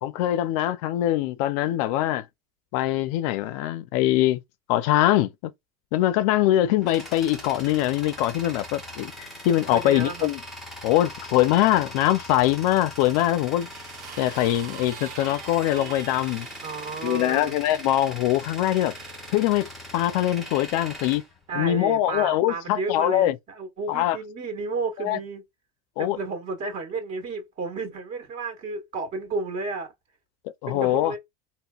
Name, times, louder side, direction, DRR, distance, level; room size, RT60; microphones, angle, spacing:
voice 1, 0.0-2.3 2.7-4.4 4.7-5.5 5.9-10.4 10.8-13.7 14.2-16.5 17.0-18.9 19.3-21.2 21.5-23.4 23.9-24.2 25.0-25.2 26.0-26.2 30.6-31.1, left 13 dB, 65° left, 0.4 m, -23 dB
Tools, 6.3-22.2, equal, ahead, 1.4 m, -41 dB
voice 2, 9.7-10.3 16.6-17.5 21.5-25.4 26.0-29.9 30.7-31.2, right 3 dB, 40° right, 1.5 m, -32 dB
sound 1, 13.1-17.4 18.3-19.3 20.2-20.4, right 10 dB, 65° right, 0.6 m, -44 dB
3.6 x 2.1 x 2.3 m
supercardioid pair, 110°, 19 cm